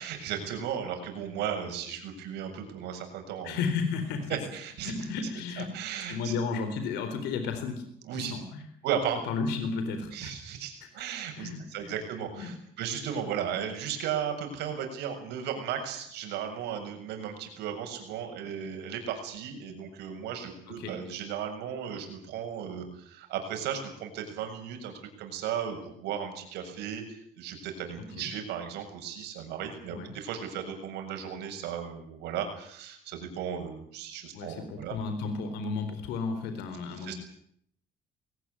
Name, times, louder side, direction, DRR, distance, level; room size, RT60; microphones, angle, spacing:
voice 1, 0.0-3.6 4.3-4.9 5.6-6.3 8.0-8.3 8.8-9.2 10.1-24.9 25.2-34.9 37.0-37.1, right 8 dB, 85° right, 5 dB, 7.1 m, -35 dB
voice 2, 3.4-4.4 4.8-5.8 6.1-7.8 8.1-8.7 9.2-10.3 10.8-11.1 11.3-12.0 12.3-12.5 20.7-21.0 28.0-28.3 29.9-30.2 34.3-37.1, left 5 dB, 90° left, 8 dB, 3.9 m, -33 dB
21.5 x 19.0 x 9.8 m, 0.68 s
cardioid pair, 110°, 17 cm